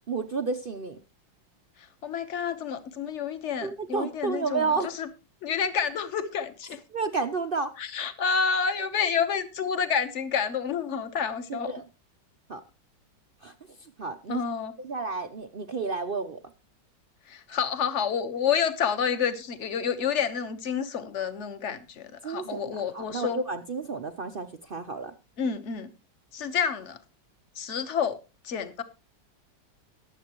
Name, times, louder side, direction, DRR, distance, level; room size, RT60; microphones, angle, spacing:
voice 1, 0.1-1.0 3.6-4.9 6.9-7.7 11.5-11.8 12.5-12.6 13.4-13.5 13.8-14.4 14.8-16.4 22.2-25.1, right 4 dB, 70° right, 0.5 m, -31 dB
voice 2, 2.0-5.1 5.4-6.8 7.8-11.7 14.3-14.7 17.3-23.4 25.4-25.9 26.3-27.0 27.6-28.2 28.4-28.8, left 7 dB, 45° left, 1.3 m, -29 dB
22.5 x 7.5 x 3.0 m
omnidirectional pair, 2.0 m